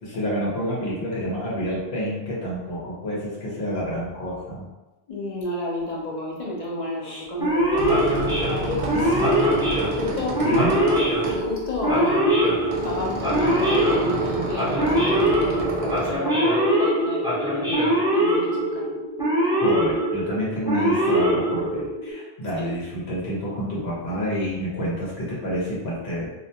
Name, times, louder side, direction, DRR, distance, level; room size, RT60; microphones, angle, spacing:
voice 1, 0.0-4.7 7.0-7.2 8.9-9.3 10.4-10.7 19.6-26.3, equal, 85° left, -7 dB, 1.0 m, -28 dB
voice 2, 5.1-7.8 8.5-9.2 9.9-10.4 11.3-15.2 15.8-18.9 22.6-22.8, left 1 dB, 50° left, -4 dB, 0.6 m, -31 dB
Male speech man speaking / Siren, 7.4-22.1, right 1 dB, 5° right, 0.6 m, -22 dB
sound 1, 7.5-16.2, right 2 dB, 55° right, 0.4 m, -31 dB
2.4 x 2.2 x 2.6 m, 1.1 s
omnidirectional pair, 1.0 m